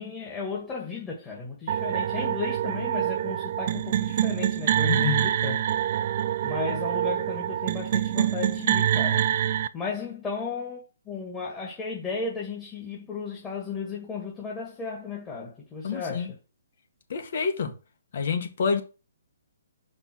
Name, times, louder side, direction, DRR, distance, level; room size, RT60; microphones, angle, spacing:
voice 1, 0.0-5.7 6.4-16.3, left 4 dB, 15° left, 1.9 m, -35 dB
sound 1, 1.7-9.7, right 11 dB, 45° right, 0.4 m, -26 dB
voice 2, 4.8-5.3 15.8-16.3 17.1-17.7 18.1-18.8, left 6 dB, 60° left, 1.7 m, -28 dB
5.4 x 4.2 x 6.1 m
hypercardioid pair, 150°, 0 cm